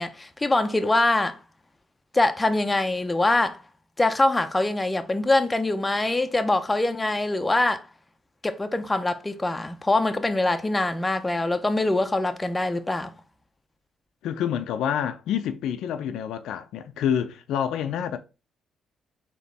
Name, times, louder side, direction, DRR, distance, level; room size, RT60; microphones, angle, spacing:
voice 1, 0.0-1.4 2.1-3.6 4.0-7.9 8.4-13.1, left 2 dB, 15° left, 0.5 m, -24 dB
voice 2, 14.2-18.2, left 9 dB, 80° left, 0.4 m, -27 dB
4.0 x 3.0 x 3.4 m
cardioid pair, 90°, 0 cm